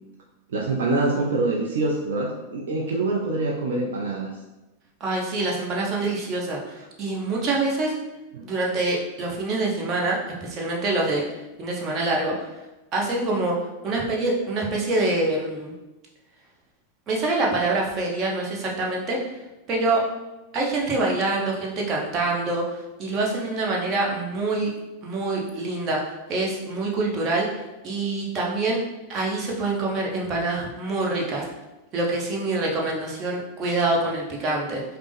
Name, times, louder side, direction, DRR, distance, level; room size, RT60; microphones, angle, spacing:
voice 1, 0.5-4.3 8.3-8.5, right 2 dB, 60° right, -1 dB, 0.4 m, -25 dB
voice 2, 5.0-7.9 8.4-11.2 11.6-12.5 12.9-13.5 13.8-15.7 17.1-19.2 19.7-20.0 20.5-24.7 25.0-26.0 26.3-28.8 29.1-31.4 31.9-34.8, right 2 dB, 30° right, -2 dB, 0.9 m, -25 dB
5.1 x 2.0 x 3.4 m, 1.0 s
figure-of-eight pair, 90°, 0 cm